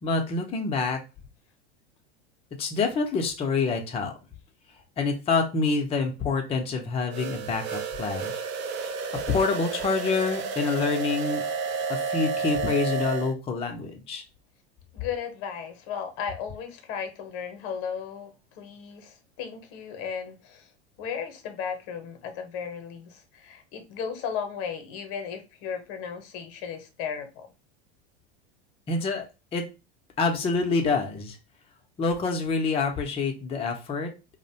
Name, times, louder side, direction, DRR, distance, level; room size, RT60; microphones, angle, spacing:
voice 1, 0.0-1.0 2.6-4.1 5.0-8.3 9.3-11.4 11.9-14.2 28.9-29.2 29.5-29.6 30.2-31.4 32.0-34.1, left 4 dB, 20° left, 0.5 m, -26 dB
sound 1, 7.1-13.3, right 5 dB, 35° right, 0.4 m, -31 dB
voice 2, 14.9-20.7 21.0-27.5, left 7 dB, 55° left, 0.7 m, -35 dB
2.4 x 2.0 x 2.7 m
hypercardioid pair, 95°, 33 cm